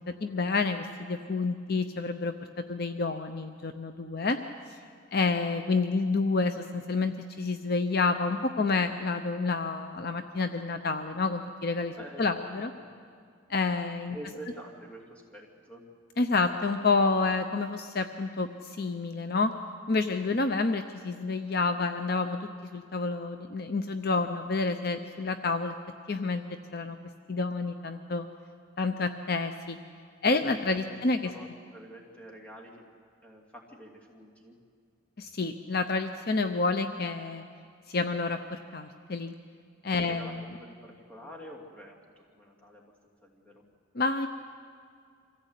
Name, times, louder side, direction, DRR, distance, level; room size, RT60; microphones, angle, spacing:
voice 1, 0.1-4.4 4.7-4.8 5.1-12.7 13.5-14.2 16.2-19.5 19.9-25.7 26.1-27.0 27.3-28.3 28.8-29.8 30.2-31.3 35.2-37.4 37.9-39.4 39.8-40.3 43.9-44.3, left 3 dB, 50° left, 8 dB, 0.7 m, -29 dB
voice 2, 11.9-12.8 14.1-15.9 30.8-32.8 33.2-34.6 39.9-43.6, equal, 5° left, -2 dB, 2.9 m, -47 dB
25.0 x 15.5 x 8.3 m, 2.2 s
head